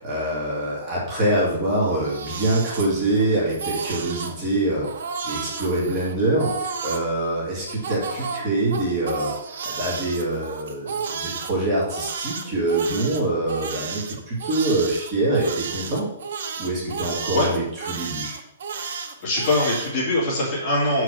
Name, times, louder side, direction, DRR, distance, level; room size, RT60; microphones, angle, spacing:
voice 1, 0.0-4.9 5.2-16.1 16.6-18.4, right 2 dB, 20° right, -6 dB, 2.3 m, -25 dB
Crying sobbing, 1.8-3.2 3.5-4.3 4.8-7.1 7.7-11.5 11.9-19.9, right 5 dB, 50° right, 1.1 m, -32 dB
voice 2, 19.2-21.0, left 1 dB, 25° left, -5 dB, 2.3 m, -22 dB
6.6 x 4.8 x 6.5 m, 0.80 s
hypercardioid pair, 180°, 0 cm